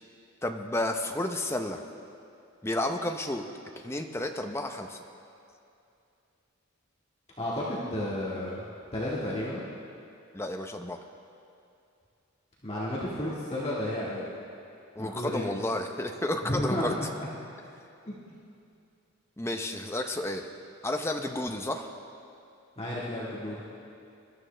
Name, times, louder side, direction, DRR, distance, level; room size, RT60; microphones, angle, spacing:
voice 1, 0.4-1.8 2.6-3.4 3.8-5.0 10.3-11.0 15.0-17.1 19.4-20.4 20.8-21.9, left 1 dB, 10° left, 5 dB, 0.7 m, -31 dB
voice 2, 7.4-9.6 12.6-14.2 15.0-15.4 16.4-16.9 18.0-18.2 22.8-23.6, left 1 dB, 30° left, -8 dB, 1.8 m, -32 dB
22.5 x 12.5 x 3.3 m, 2.6 s
head